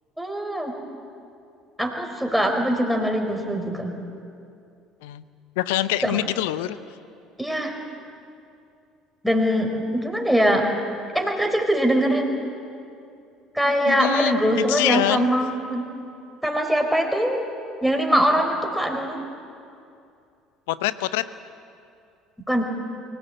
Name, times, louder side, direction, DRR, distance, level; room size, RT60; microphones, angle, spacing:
voice 1, 0.2-0.7 1.8-3.9 6.0-6.2 7.4-7.7 9.2-10.7 11.1-12.3 13.5-15.8 16.4-17.4 17.8-19.2 22.5-22.6, equal, ahead, 2 dB, 4.3 m, -22 dB
voice 2, 5.6-6.8 13.9-15.3 20.7-21.2, left 14 dB, 65° left, 15 dB, 0.8 m, -25 dB
24.0 x 17.5 x 8.7 m, 2.5 s
figure-of-eight pair, 60°, 0 cm